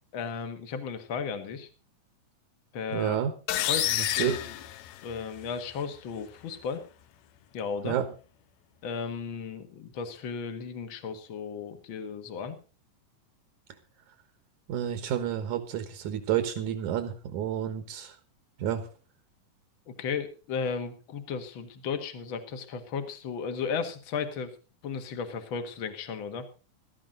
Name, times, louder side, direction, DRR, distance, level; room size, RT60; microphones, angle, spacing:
voice 1, 0.1-1.7 2.7-3.2 3.7-4.6 5.0-6.8 7.5-8.0 8.8-12.6 19.9-24.5 24.8-26.5, left 5 dB, 45° left, 8 dB, 2.1 m, -35 dB
voice 2, 2.9-3.3 3.9-4.4 7.8-8.1 14.7-18.2 18.6-18.9, right 9 dB, 70° right, 8 dB, 2.7 m, -30 dB
sound 1, 3.5-5.4, left 13 dB, 80° left, 2.4 m, -29 dB
17.0 x 13.5 x 3.9 m, 0.34 s
omnidirectional pair, 3.7 m